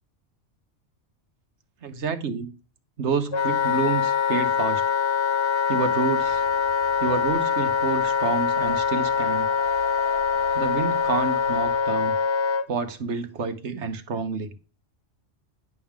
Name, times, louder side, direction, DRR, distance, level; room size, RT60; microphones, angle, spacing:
voice 1, 1.8-2.5 3.0-4.8 5.7-6.4 7.0-9.5 10.5-12.2 12.7-14.5, right 5 dB, 75° right, 1.4 m, -28 dB
Wind instrument woodwind instrument, 3.3-12.7, left 6 dB, 50° left, 0.3 m, -24 dB
sound 1, 6.2-11.8, left 1 dB, 80° left, 2.8 m, -45 dB
10.5 x 3.6 x 7.3 m
omnidirectional pair, 1.2 m